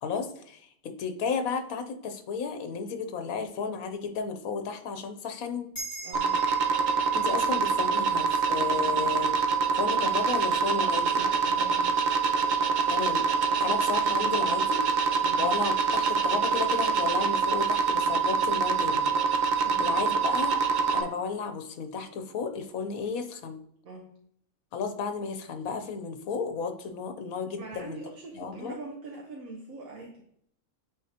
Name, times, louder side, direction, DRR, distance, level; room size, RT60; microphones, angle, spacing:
voice 1, 0.0-5.7 7.1-9.5 9.8-11.2 12.9-13.3 13.6-14.8 15.4-19.3 19.8-20.6 20.9-23.6 24.7-28.0 28.3-28.7, left 5 dB, 80° left, 7 dB, 1.2 m, -33 dB
sound 1, 5.7-10.5, right 2 dB, 15° left, 2.2 m, -45 dB
voice 2, 6.0-6.4 11.2-11.9 15.2-15.5 19.6-20.0 23.8-24.1 27.6-30.2, right 3 dB, 80° right, -1 dB, 1.4 m, -43 dB
sound 2, 6.1-21.0, right 5 dB, 60° right, 0.5 m, -25 dB
8.6 x 3.8 x 2.8 m, 0.67 s
omnidirectional pair, 1.5 m